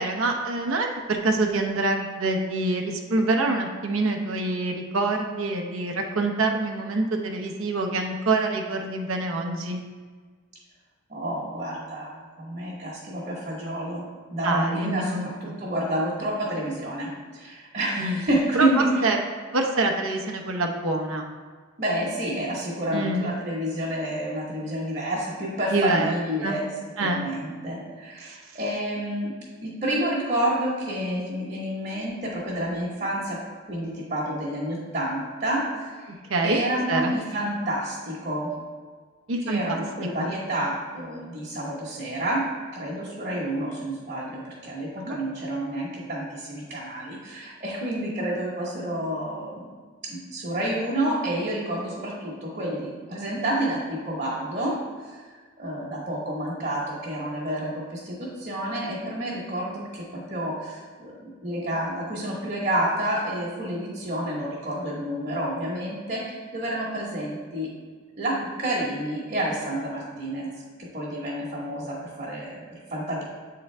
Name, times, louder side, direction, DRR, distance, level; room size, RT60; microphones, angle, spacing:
voice 1, 0.0-9.8 14.4-15.3 18.0-18.2 18.5-18.7 19.0-19.2 19.5-21.2 22.9-23.3 25.7-26.1 26.4-26.6 27.0-27.3 28.2-28.4 36.3-36.6 36.9-37.1 39.3-39.8 40.2-40.3 45.0-45.2, right 2 dB, 80° right, 2 dB, 0.8 m, -26 dB
voice 2, 11.1-15.1 15.4-19.1 21.8-26.7 27.0-29.3 29.6-33.4 33.7-36.1 36.4-38.5 39.4-42.5 42.7-49.7 50.0-55.2 55.6-67.7 68.2-70.5 70.8-73.2, right 1 dB, 40° right, -7 dB, 1.2 m, -29 dB
8.1 x 3.8 x 3.3 m, 1.5 s
head